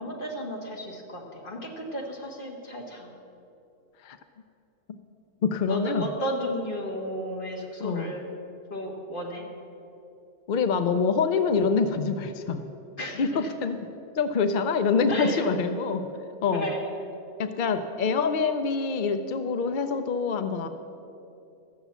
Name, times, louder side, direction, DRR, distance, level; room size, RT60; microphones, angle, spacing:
voice 1, 0.0-3.1 5.7-8.3 8.7-9.4 13.0-13.5 15.1-15.5 16.5-16.8, equal, 40° left, 0 dB, 1.8 m, -33 dB
voice 2, 5.4-6.1 7.8-8.1 10.5-12.6 13.0-13.9 14.2-16.1 16.4-16.7 17.4-20.7, left 5 dB, 60° left, 9 dB, 0.5 m, -25 dB
13.0 x 7.1 x 8.1 m, 2.8 s
omnidirectional pair, 1.5 m